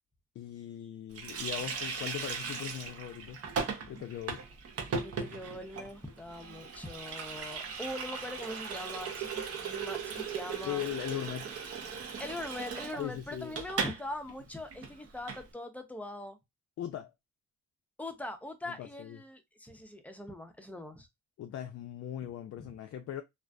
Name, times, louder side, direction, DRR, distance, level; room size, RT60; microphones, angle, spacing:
voice 1, 0.4-3.4 3.9-4.4 10.6-11.5 13.0-13.5 16.8-17.1 18.7-19.2 21.4-23.2, left 11 dB, 55° left, 0.4 m, -39 dB
Water tap faucet, 1.2-14.0 14.3-14.4 14.7-15.4, right 5 dB, 50° right, 0.7 m, -38 dB
voice 2, 5.0-10.8 12.2-16.4 18.0-21.1 22.6-22.7, left 1 dB, 5° left, 0.5 m, -42 dB
2.4 x 2.4 x 2.2 m
cardioid pair, 90°, 30 cm